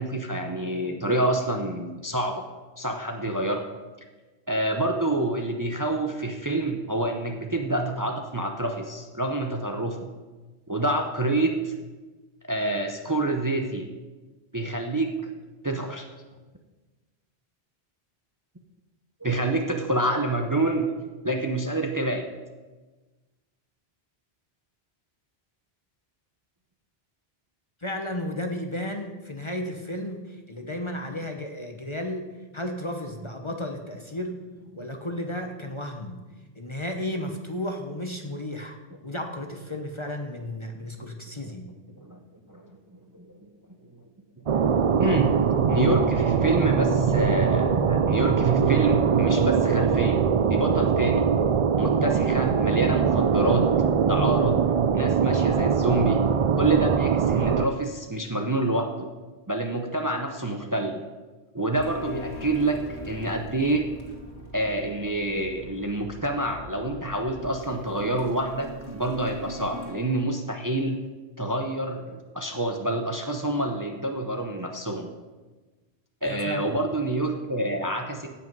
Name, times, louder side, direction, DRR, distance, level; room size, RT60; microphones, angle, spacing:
voice 1, 0.0-2.4 2.8-3.6 4.5-10.0 10.7-11.7 12.5-13.9 14.5-15.1 15.6-16.1 19.2-20.9 21.2-22.3 34.8-34.9 41.4-41.5 42.0-42.2 42.5-43.5 44.5-44.7 45.0-45.3 45.7-51.3 51.8-53.6 54.0-54.6 54.9-56.2 56.5-59.1 59.5-61.0 61.5-62.8 63.1-63.9 64.5-71.0 71.4-75.1 76.2-78.3, right 2 dB, 20° right, 3 dB, 0.7 m, -27 dB
voice 2, 27.8-32.3 32.5-34.4 34.8-36.2 36.6-38.8 39.0-41.7 76.2-76.7, left 1 dB, 30° left, 4 dB, 0.9 m, -33 dB
sound 1, 44.5-57.7, right 6 dB, 60° right, 0.3 m, -22 dB
sound 2, 61.8-69.9, left 1 dB, 85° left, 2.0 m, -41 dB
17.0 x 5.7 x 5.4 m, 1.2 s
omnidirectional pair, 1.1 m